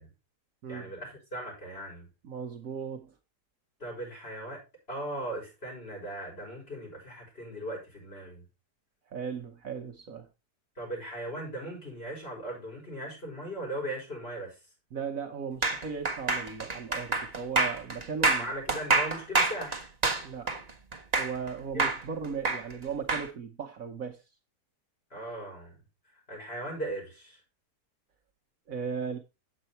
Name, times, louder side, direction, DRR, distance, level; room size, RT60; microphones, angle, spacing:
voice 1, 0.7-2.1 3.8-4.6 4.9-8.4 10.8-14.6 18.3-19.9 21.7-21.9 25.1-25.8 26.3-27.4, right 1 dB, 35° left, 6.5 m, -38 dB
voice 2, 2.2-3.1 9.1-10.3 14.9-18.5 20.2-20.6 21.1-24.2 28.7-29.2, right 6 dB, 60° right, 1.3 m, -37 dB
sound 1, 15.6-21.5 21.8-23.3, right 3 dB, 25° right, 1.4 m, -27 dB
8.8 x 8.1 x 4.2 m
omnidirectional pair, 1.8 m